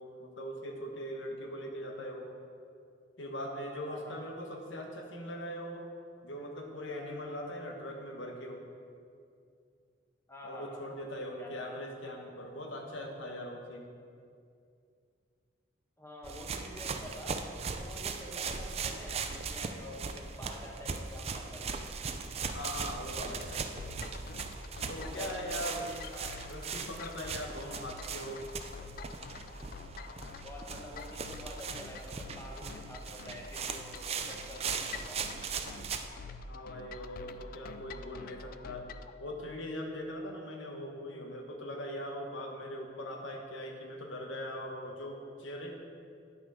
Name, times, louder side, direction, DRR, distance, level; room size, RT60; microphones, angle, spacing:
voice 1, 0.0-2.3 3.2-5.9 6.2-8.6 10.4-13.9 22.5-23.6 24.8-25.8 26.4-28.5 36.5-38.9 39.2-45.7, equal, 85° left, 2 dB, 1.2 m, -41 dB
voice 2, 3.9-4.2 10.3-10.8 11.4-11.7 16.0-17.4 17.7-21.8 24.9-26.3 30.4-35.2, equal, 15° left, -2 dB, 1.3 m, -48 dB
sound 1, 16.2-36.1, right 5 dB, 35° right, 0.4 m, -39 dB
sound 2, 23.3-39.1, left 4 dB, 50° left, 0.3 m, -47 dB
9.9 x 6.2 x 4.9 m, 2.4 s
head